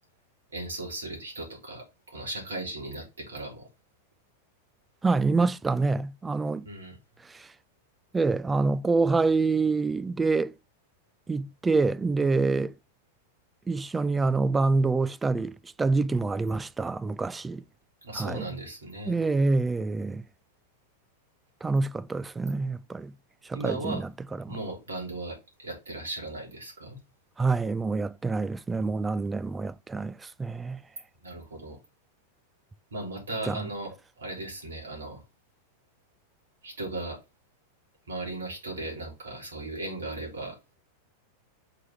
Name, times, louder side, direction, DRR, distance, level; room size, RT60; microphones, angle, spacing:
voice 1, 0.5-3.7 6.7-7.0 18.0-19.2 23.5-24.0 24.5-27.0 31.2-31.8 32.9-35.2 36.6-37.2 38.1-40.6, right 2 dB, 70° right, 3.6 m, -37 dB
voice 2, 5.0-6.7 7.3-7.5 8.1-10.5 11.3-12.7 13.7-17.6 18.1-18.6 19.1-20.2 21.6-23.1 23.5-24.1 24.4-24.5 27.4-30.8 33.5-33.6, right 3 dB, 10° right, 0.3 m, -26 dB
5.8 x 4.7 x 3.6 m
figure-of-eight pair, 90°, 0 cm